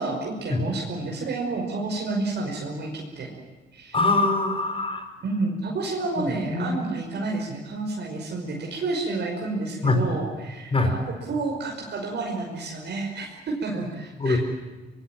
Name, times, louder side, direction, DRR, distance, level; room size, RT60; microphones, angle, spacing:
voice 1, 0.0-3.3 3.7-3.9 5.2-10.7 11.3-13.3 13.6-14.4, right 3 dB, 60° right, 0 dB, 5.4 m, -30 dB
voice 2, 3.9-5.1 6.2-6.8 9.8-10.0 10.7-10.9 14.2-14.4, left 2 dB, 25° left, 6 dB, 5.5 m, -23 dB
24.5 x 22.0 x 9.0 m, 1.2 s
cardioid pair, 90°, 20 cm